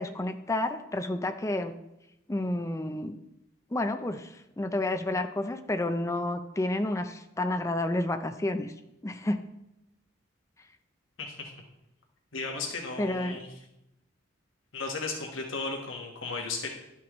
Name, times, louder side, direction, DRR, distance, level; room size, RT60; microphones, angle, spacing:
voice 1, 0.0-1.7 2.3-3.2 3.7-8.7 9.0-9.4 13.0-13.4, left 1 dB, 15° left, 8 dB, 0.5 m, -30 dB
voice 2, 11.2-11.5 12.3-13.5 14.7-16.7, left 3 dB, 80° left, 1 dB, 1.4 m, -35 dB
11.5 x 5.8 x 3.1 m, 0.89 s
head